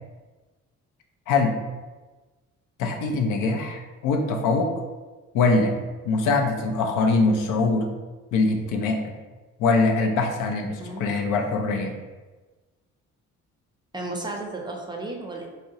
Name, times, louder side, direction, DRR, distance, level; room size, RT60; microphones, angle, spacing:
voice 1, 1.3-1.6 2.8-4.7 5.3-5.7 6.0-7.9 8.3-9.1 9.6-11.9, left 3 dB, 90° left, 3 dB, 0.5 m, -23 dB
voice 2, 10.8-11.1 13.9-15.5, right 2 dB, 15° right, 0 dB, 0.4 m, -34 dB
3.6 x 2.0 x 2.7 m, 1.2 s
cardioid pair, 90°, 30 cm